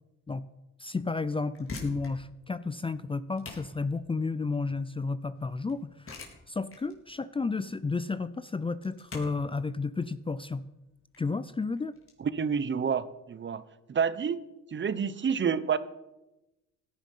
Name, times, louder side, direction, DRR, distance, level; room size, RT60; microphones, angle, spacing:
voice 1, 0.8-6.2 6.5-10.6 11.2-11.9, left 4 dB, 20° left, 14 dB, 0.5 m, -32 dB
sound 1, 1.5-12.1, left 3 dB, 45° left, 4.0 m, -47 dB
voice 2, 12.2-13.6 13.9-14.4 14.7-15.8, right 6 dB, 40° right, 15 dB, 0.9 m, -28 dB
17.0 x 10.5 x 5.6 m, 0.98 s
cardioid pair, 90°, 30 cm